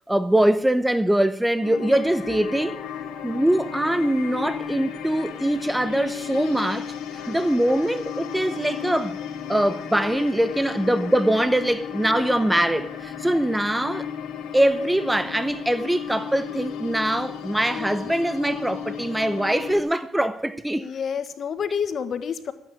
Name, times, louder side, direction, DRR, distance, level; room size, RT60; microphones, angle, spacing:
voice 1, 0.1-2.8 3.2-9.2 9.5-14.1 14.5-20.9, right 1 dB, 5° right, 0.8 m, -23 dB
sound 1, 1.6-19.8, left 8 dB, 90° left, 2.4 m, -34 dB
voice 2, 20.7-22.5, left 7 dB, 55° left, 1.5 m, -29 dB
13.5 x 9.1 x 8.9 m
cardioid pair, 90°, 0 cm